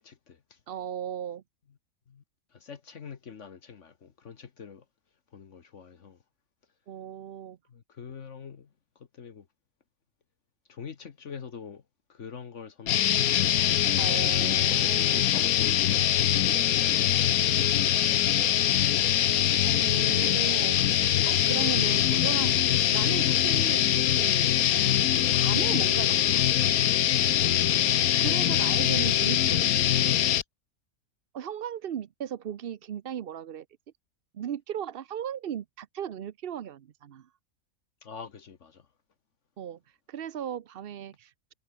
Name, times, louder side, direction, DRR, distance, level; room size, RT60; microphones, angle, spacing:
voice 1, 0.0-0.6 2.1-2.2 2.5-4.8 5.3-6.2 7.7-8.7 9.0-9.5 10.7-11.8 12.1-13.5 15.1-16.0 16.4-17.6 38.0-38.9, left 6 dB, 60° left, 1.5 m, -45 dB
voice 2, 0.7-1.4 6.9-7.6 14.0-15.3 19.6-23.8 24.1-24.6 25.3-26.7 28.2-30.1 31.3-33.7 34.3-37.3 39.6-41.5, right 9 dB, 55° right, 0.7 m, -37 dB
sound 1, 12.9-30.4, left 11 dB, 85° left, 1.3 m, -23 dB
sound 2, 24.5-28.5, equal, 5° left, 5.8 m, -53 dB
omnidirectional pair, 1.5 m